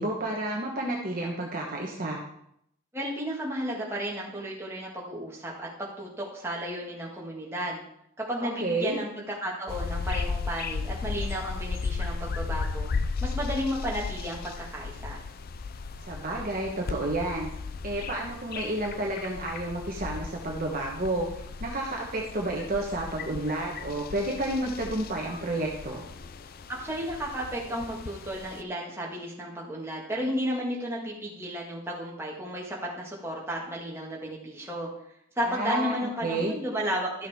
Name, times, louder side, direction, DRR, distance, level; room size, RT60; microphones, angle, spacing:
voice 1, 0.0-2.2 8.4-9.0 16.0-17.5 17.8-21.3 21.6-26.0 35.5-35.9 36.2-36.5, right 2 dB, 40° right, -1 dB, 1.2 m, -30 dB
voice 2, 2.9-7.8 8.2-9.1 9.4-12.9 13.2-15.2 26.7-34.9 35.4-37.3, equal, 10° right, -4 dB, 1.8 m, -33 dB
sound 1, 9.7-28.6, left 4 dB, 40° left, 0.4 m, -36 dB
12.5 x 6.5 x 3.6 m, 0.74 s
head